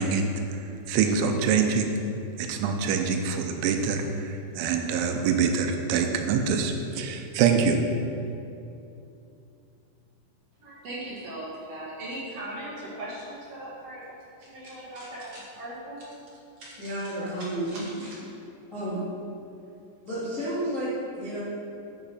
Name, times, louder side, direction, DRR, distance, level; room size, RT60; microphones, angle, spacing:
voice 1, 0.0-1.9 2.4-7.8, right 6 dB, 85° right, 5 dB, 3.0 m, -25 dB
voice 2, 10.6-14.0 14.4-16.0 16.6-16.7 17.2-18.1, right 1 dB, 55° right, -7 dB, 1.7 m, -39 dB
voice 3, 16.8-17.8 18.7-19.0 20.0-21.4, right 1 dB, 40° left, -10 dB, 1.1 m, -31 dB
9.2 x 7.1 x 5.4 m, 2.7 s
omnidirectional pair, 5.4 m